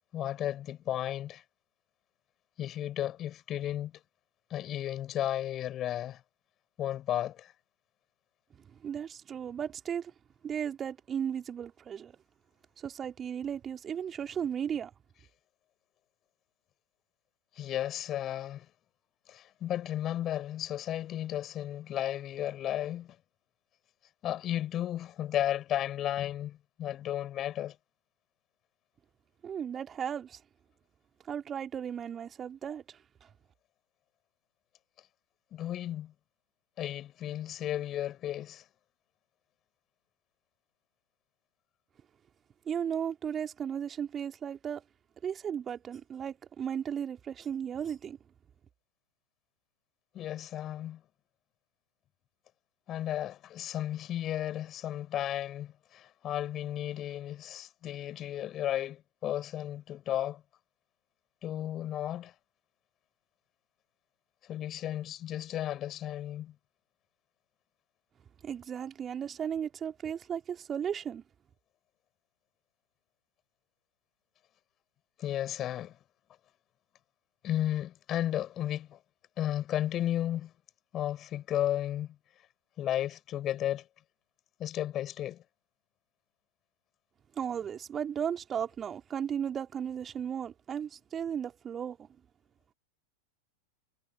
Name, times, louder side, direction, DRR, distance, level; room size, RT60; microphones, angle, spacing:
voice 1, 0.1-1.4 2.6-4.0 4.5-6.2 6.8-7.5 17.6-18.7 19.3-23.2 24.2-27.8 35.5-36.1 36.8-38.6 50.1-51.0 52.9-60.4 61.4-62.3 64.5-66.5 75.2-76.0 77.4-79.0 79.4-80.5 80.9-82.2 82.8-83.9 84.6-85.4, left 12 dB, 30° left, 5.8 m, -34 dB
voice 2, 8.8-10.1 10.4-12.1 12.8-14.9 29.4-30.4 31.3-32.8 42.7-44.8 45.2-48.2 68.4-71.2 87.4-92.0, right 8 dB, 25° right, 3.1 m, -35 dB
figure-of-eight pair, 90°, 0 cm